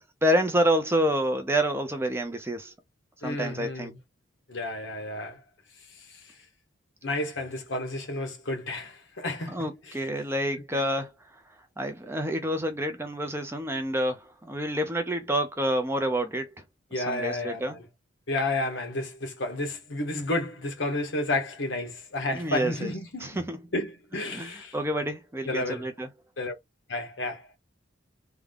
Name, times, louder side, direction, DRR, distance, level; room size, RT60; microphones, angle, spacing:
voice 1, 0.2-2.7 3.2-3.9 9.5-11.1 11.8-16.5 16.9-17.8 22.3-22.9 23.2-23.6 24.3-26.1, equal, 10° right, 0.5 m, -28 dB
voice 2, 3.2-4.0 4.5-5.4 5.9-6.4 7.0-10.0 10.7-10.9 16.9-17.8 18.3-23.4 23.7-24.8 25.4-25.9 26.4-26.5 26.9-27.5, left 2 dB, 65° left, 1.1 m, -31 dB
3.5 x 2.2 x 3.5 m
head